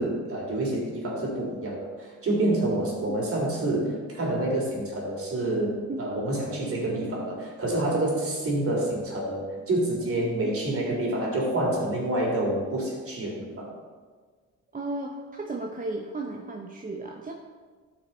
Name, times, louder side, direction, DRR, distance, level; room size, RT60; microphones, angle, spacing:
voice 1, 0.0-13.7, right 1 dB, 50° right, -1 dB, 3.3 m, -28 dB
voice 2, 14.7-17.3, right 2 dB, 25° right, 0 dB, 0.9 m, -34 dB
12.5 x 5.9 x 4.4 m, 1.5 s
cardioid pair, 90°, 30 cm